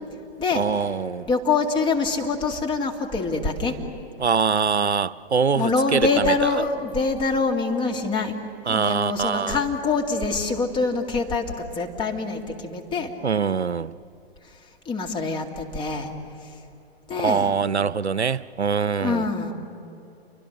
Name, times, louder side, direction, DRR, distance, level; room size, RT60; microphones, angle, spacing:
voice 1, 0.5-1.3 4.2-6.5 8.7-9.6 13.2-13.9 17.2-19.3, right 6 dB, 85° right, 0.6 m, -23 dB
voice 2, 1.3-3.8 5.5-8.4 8.7-13.1 14.4-14.5 14.8-16.1 16.4-16.5 17.1-17.5 19.0-19.5, left 4 dB, 15° left, 2.4 m, -25 dB
29.5 x 24.0 x 6.6 m
figure-of-eight pair, 115°, 32 cm